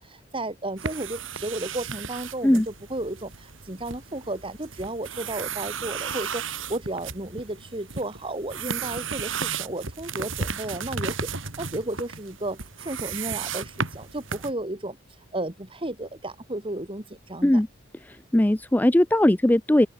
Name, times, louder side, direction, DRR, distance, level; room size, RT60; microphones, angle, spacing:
voice 1, 0.0-15.0 15.3-17.6, right 1 dB, 25° right, 2.1 m, -33 dB
sound 1, 0.8-14.5, right 6 dB, 70° right, 4.1 m, -34 dB
voice 2, 18.0-19.9, left 1 dB, 10° left, 0.4 m, -19 dB
head